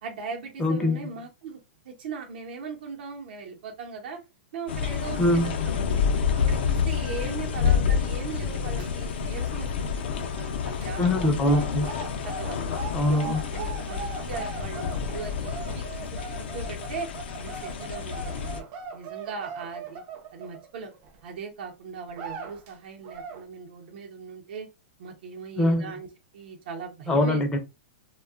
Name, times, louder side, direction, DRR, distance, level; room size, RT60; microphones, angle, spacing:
voice 1, 0.0-1.6 1.8-4.2 4.5-6.1 6.3-11.0 11.5-11.6 12.2-12.7 13.1-17.1 17.4-18.6 18.9-20.0 20.3-20.9 21.2-24.7 25.0-26.1 26.3-27.4, right 5 dB, 65° right, 0.8 m, -39 dB
voice 2, 0.6-1.0 5.2-5.5 11.0-11.9 12.9-13.4 25.6-25.9 27.1-27.6, left 1 dB, 15° left, 0.5 m, -23 dB
sound 1, 4.7-18.6, left 6 dB, 70° left, 0.5 m, -29 dB
sound 2, 8.4-9.4 9.6-9.9 10.7-21.2 21.6-21.7 22.1-22.7 23.0-23.4, right 5 dB, 35° right, 0.5 m, -40 dB
2.6 x 2.3 x 2.4 m
hypercardioid pair, 145°, 6 cm